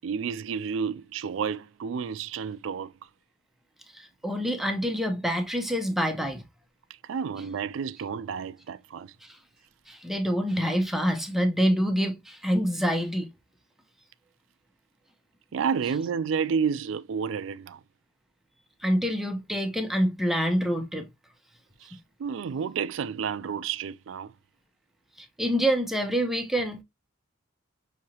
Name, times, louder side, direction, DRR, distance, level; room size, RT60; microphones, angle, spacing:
voice 1, 0.0-2.9 7.0-9.1 15.5-17.8 21.8-24.3, right 6 dB, 70° right, 0.3 m, -30 dB
voice 2, 3.9-6.4 9.2-9.4 9.9-13.3 18.8-21.1 25.2-26.8, equal, ahead, 0.6 m, -26 dB
6.3 x 2.8 x 2.7 m
head